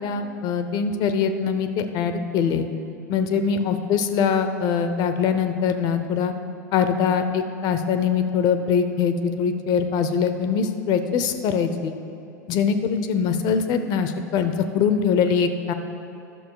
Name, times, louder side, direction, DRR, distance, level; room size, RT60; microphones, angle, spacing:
voice 1, 0.0-2.7 3.1-6.3 6.7-12.0 12.5-15.7, left 6 dB, 45° left, 9 dB, 0.7 m, -23 dB
11.5 x 6.4 x 4.7 m, 2.9 s
figure-of-eight pair, 85°, 10 cm